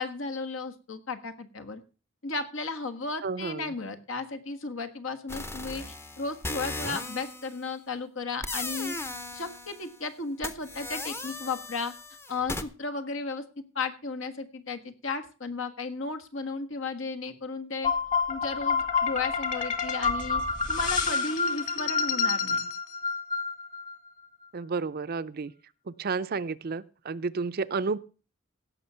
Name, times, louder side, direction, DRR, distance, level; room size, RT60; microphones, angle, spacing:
voice 1, 0.0-1.8 2.2-8.9 9.3-11.9 12.3-13.4 13.7-17.9 18.3-20.4 20.7-22.7, left 4 dB, 70° left, 7 dB, 1.5 m, -34 dB
voice 2, 3.2-3.7 24.5-25.5 26.0-28.0, right 4 dB, 50° right, 14 dB, 0.5 m, -31 dB
sound 1, 5.3-7.6 8.4-10.0 10.4-12.6, left 2 dB, 10° left, 0.7 m, -37 dB
sound 2, 17.8-23.9, left 5 dB, 40° left, 2.2 m, -28 dB
17.0 x 6.2 x 5.6 m, 0.35 s
head